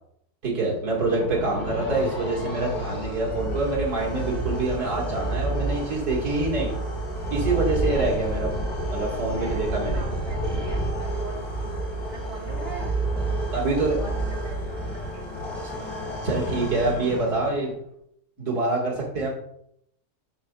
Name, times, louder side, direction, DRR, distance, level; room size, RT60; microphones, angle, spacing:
voice 1, 0.4-6.7 7.3-8.5 8.9-10.0 13.5-14.0 15.6-15.7 16.2-17.7 18.4-19.3, right 2 dB, 85° right, -3 dB, 2.4 m, -26 dB
sound 1, 0.8-17.8, right 1 dB, 35° left, 3.2 m, -30 dB
voice 2, 9.4-11.7 12.0-12.9 13.4-14.8 15.1-15.2, right 2 dB, 40° right, -2 dB, 2.7 m, -42 dB
14.0 x 5.0 x 2.3 m, 0.72 s
omnidirectional pair, 1.6 m